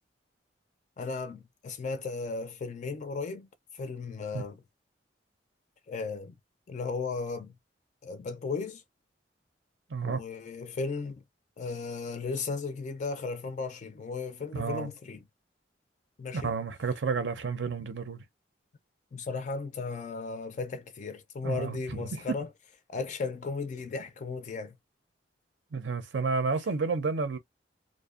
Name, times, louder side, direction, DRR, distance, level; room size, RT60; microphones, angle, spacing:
voice 1, 1.0-4.6 5.9-6.3 6.7-7.5 8.0-8.8 10.1-11.2 11.6-15.2 16.2-16.5 19.1-22.5 22.9-24.8, left 4 dB, 40° left, 0.3 m, -35 dB
voice 2, 9.9-10.2 14.5-14.9 16.3-18.2 21.4-22.1 25.7-27.4, right 4 dB, 75° right, 0.6 m, -31 dB
2.5 x 2.0 x 2.4 m
head